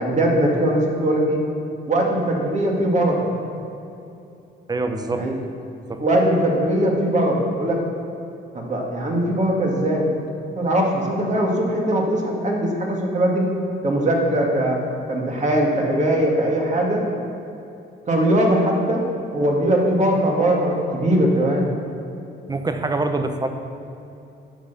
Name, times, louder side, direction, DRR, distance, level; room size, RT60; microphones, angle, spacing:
voice 1, 0.0-1.4 1.9-3.2 5.1-5.4 6.0-7.8 8.5-10.1 10.6-13.5 13.8-14.8 15.1-17.1 18.1-19.1 19.3-21.7, right 1 dB, 35° right, -1 dB, 2.1 m, -20 dB
voice 2, 4.7-5.3 5.9-6.0 22.5-23.5, right 3 dB, 20° right, 7 dB, 0.8 m, -24 dB
10.0 x 6.2 x 7.0 m, 2.7 s
cardioid pair, 90°, 20 cm